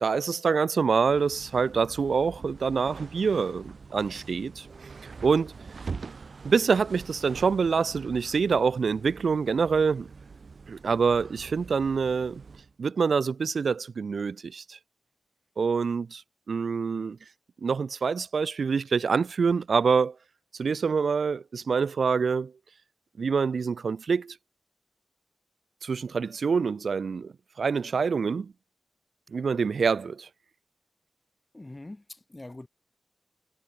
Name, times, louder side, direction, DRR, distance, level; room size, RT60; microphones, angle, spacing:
voice 1, 0.0-4.7 5.0-5.5 6.4-10.1 10.7-12.4 12.8-14.8 15.6-16.2 16.5-17.2 17.6-20.2 20.6-22.5 23.2-24.4 25.8-28.5 29.3-30.3, right 5 dB, 85° right, 0.6 m, -26 dB
sound 1, 1.0-12.7, right 4 dB, 65° right, 6.7 m, -44 dB
voice 2, 31.5-32.7, left 2 dB, 20° left, 6.8 m, -43 dB
wide cardioid pair, 120°, 0 cm